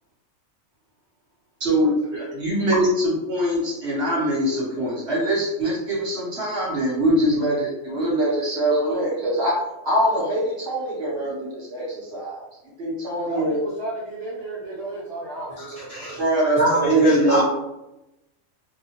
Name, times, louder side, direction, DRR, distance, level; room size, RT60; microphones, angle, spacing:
voice 1, 1.6-12.4 12.8-13.6 16.2-17.4, right 1 dB, 55° right, -6 dB, 0.9 m, -23 dB
voice 2, 13.3-16.2, right 2 dB, 25° left, -9 dB, 0.8 m, -33 dB
voice 3, 15.9-16.2 16.6-17.4, right 1 dB, 30° right, -8 dB, 0.8 m, -22 dB
2.8 x 2.1 x 2.8 m, 0.94 s
omnidirectional pair, 1.4 m